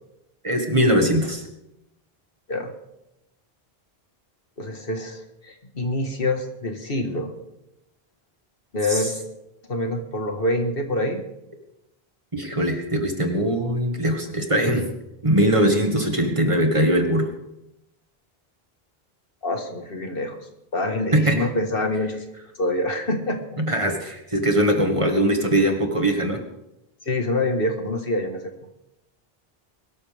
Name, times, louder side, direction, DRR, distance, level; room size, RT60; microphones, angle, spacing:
voice 1, 0.4-1.4 8.9-9.1 12.3-14.9 15.2-17.3 21.1-21.4 23.6-26.4, right 1 dB, 30° right, 3 dB, 1.8 m, -21 dB
voice 2, 4.6-7.3 8.7-9.2 9.7-11.2 19.4-20.3 20.7-22.2 22.6-23.6 27.1-28.5, left 1 dB, 65° left, 4 dB, 1.9 m, -26 dB
22.5 x 13.0 x 3.5 m, 0.87 s
omnidirectional pair, 1.0 m